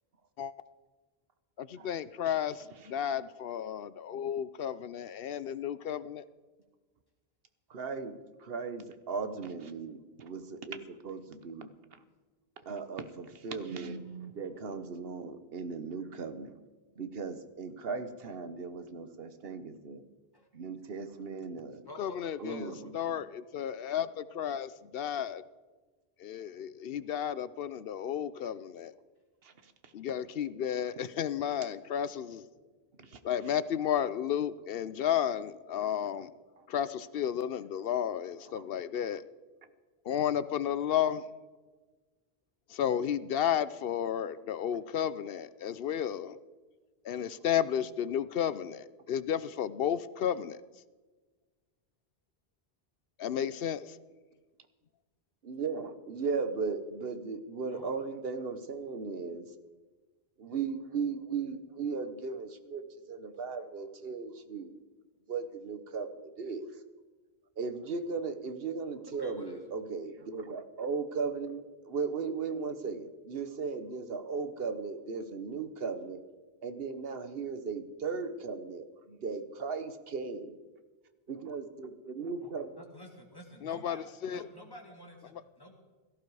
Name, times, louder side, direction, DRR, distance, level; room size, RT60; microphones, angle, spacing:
voice 1, 1.6-6.2 22.0-25.4 26.2-28.9 29.9-32.5 33.2-36.3 36.7-39.2 40.1-41.3 42.7-46.4 47.0-50.6 53.2-54.0 83.6-84.5, left 9 dB, 70° left, 16 dB, 0.8 m, -32 dB
voice 2, 7.7-11.7 12.7-16.5 17.0-20.0 20.5-21.8 22.4-22.9 29.4-29.5 33.0-33.1 38.6-38.7 55.4-59.5 60.4-64.8 65.3-66.7 67.6-76.2 76.6-80.5 81.3-82.7, right 5 dB, 70° right, 10 dB, 1.3 m, -37 dB
voice 3, 21.9-22.9 57.6-57.9 69.1-69.7 82.4-85.7, equal, 20° left, 1 dB, 2.3 m, -49 dB
17.0 x 14.0 x 4.8 m, 1.3 s
omnidirectional pair, 1.0 m